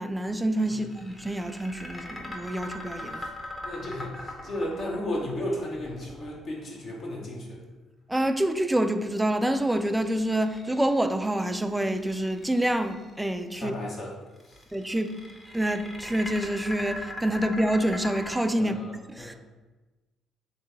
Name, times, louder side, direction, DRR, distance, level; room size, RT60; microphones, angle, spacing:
voice 1, 0.0-3.2 8.1-13.7 14.7-15.2 15.5-18.8 19.1-19.4, right 1 dB, 10° right, 0.3 m, -27 dB
sound 1, 0.6-6.8 9.6-11.2 11.8-13.1 14.4-18.4, left 1 dB, 20° left, 0.8 m, -40 dB
voice 2, 3.1-7.6 13.5-14.1 14.4-14.6 18.6-19.4, left 1 dB, 55° left, 0.9 m, -35 dB
3.3 x 2.8 x 3.5 m
hypercardioid pair, 50°, 0 cm